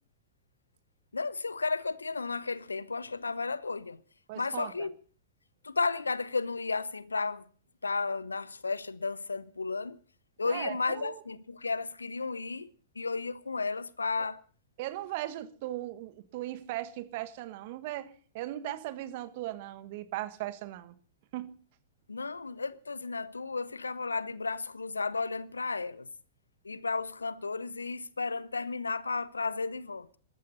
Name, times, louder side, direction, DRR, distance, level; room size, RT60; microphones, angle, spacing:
voice 1, 1.1-4.0 4.4-4.9 5.6-7.4 7.8-10.0 10.4-12.7 13.0-14.4 22.1-26.1 26.6-30.2, left 4 dB, 80° left, 0.8 m, -33 dB
voice 2, 4.3-4.9 10.4-11.2 14.8-20.9 21.3-21.5, right 15 dB, 50° right, 1.6 m, -38 dB
20.0 x 14.0 x 4.1 m
figure-of-eight pair, 100°, 0 cm